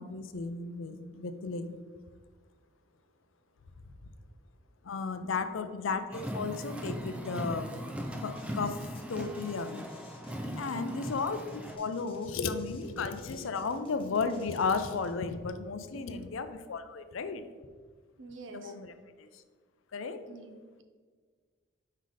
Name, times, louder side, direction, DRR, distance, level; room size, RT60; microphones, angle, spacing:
voice 1, 0.0-1.7 4.8-7.7 8.2-8.8 9.1-9.9 10.6-17.4 18.5-18.9 19.2-19.3 19.9-20.2, left 4 dB, 75° left, 10 dB, 0.5 m, -34 dB
voice 2, 5.2-5.6 10.4-11.1 15.9-16.3 18.2-18.7 20.3-20.8, right 3 dB, 60° right, 6 dB, 0.7 m, -48 dB
Car, 6.1-11.8, equal, 5° right, 0.4 m, -39 dB
sound 1, 8.1-15.2, left 2 dB, 25° left, 0.7 m, -56 dB
5.4 x 4.0 x 4.8 m, 1.5 s
head